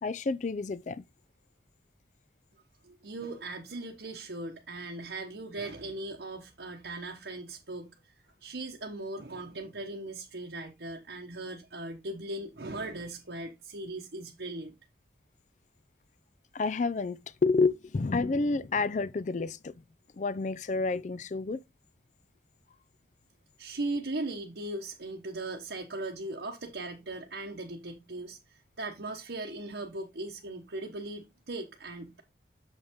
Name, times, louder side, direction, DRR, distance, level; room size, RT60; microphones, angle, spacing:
voice 1, 0.0-1.0 16.5-19.7 20.2-21.6, left 3 dB, 40° left, 0.4 m, -29 dB
voice 2, 2.8-14.7 23.6-32.2, right 2 dB, 70° right, 1.0 m, -39 dB
7.3 x 5.4 x 3.6 m
head